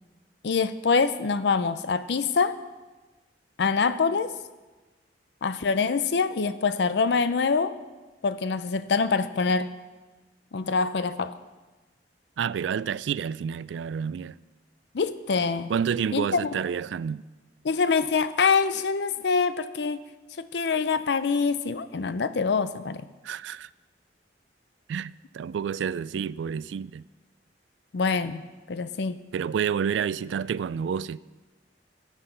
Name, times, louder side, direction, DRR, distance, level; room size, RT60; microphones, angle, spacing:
voice 1, 0.4-2.6 3.6-4.3 5.4-7.8 8.2-9.7 10.5-11.4 14.9-15.7 16.1-16.5 17.6-20.0 20.4-23.1 27.9-29.2, left 5 dB, 70° left, 0.5 m, -25 dB
voice 2, 12.4-14.3 15.7-17.2 23.2-23.7 24.9-27.0 29.3-31.2, right 7 dB, 90° right, 0.3 m, -29 dB
13.0 x 8.2 x 5.6 m
head